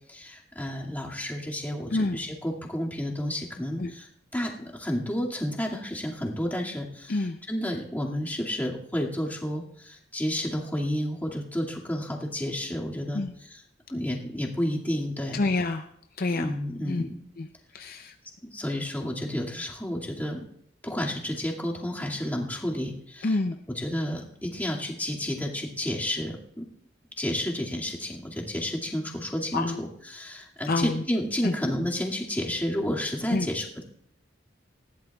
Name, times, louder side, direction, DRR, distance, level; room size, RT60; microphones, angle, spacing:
voice 1, 0.1-4.1 4.3-13.2 13.5-13.6 13.9-15.5 16.3-17.2 18.4-20.4 20.8-23.3 23.7-26.7 27.2-33.8, equal, 10° left, -3 dB, 2.2 m, -31 dB
voice 2, 1.9-2.2 3.8-3.9 7.1-7.4 13.1-13.3 15.3-15.9 16.2-16.5 16.9-17.1 17.4-17.5 17.7-18.1 23.2-23.6 29.5-29.8 30.7-31.0 31.4-31.5 33.3-33.5, left 2 dB, 50° left, 6 dB, 0.6 m, -27 dB
20.0 x 15.0 x 2.4 m, 0.71 s
head